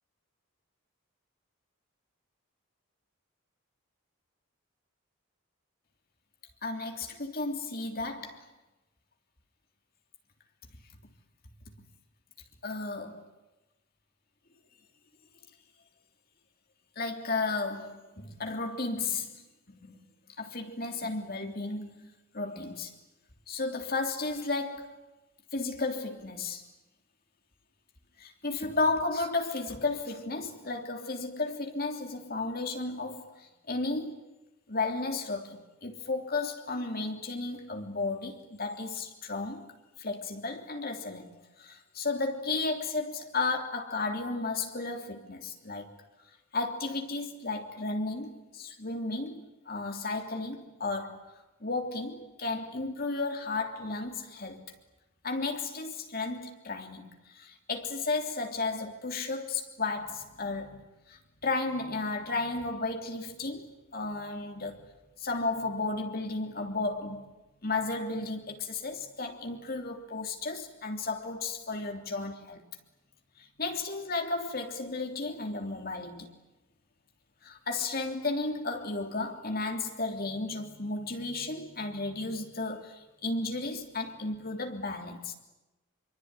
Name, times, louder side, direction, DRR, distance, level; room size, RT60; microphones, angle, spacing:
voice 1, 6.6-8.5 12.6-13.3 16.9-19.4 19.7-20.0 20.4-22.9 23.5-24.9 25.5-26.6 28.2-34.2 34.7-39.7 40.0-45.9 46.5-51.3 51.6-54.6 55.2-64.9 65.2-67.3 67.6-72.6 73.4-76.3 77.4-85.3, left 3 dB, 45° left, 3.3 m, -34 dB
25.0 x 24.5 x 9.8 m
head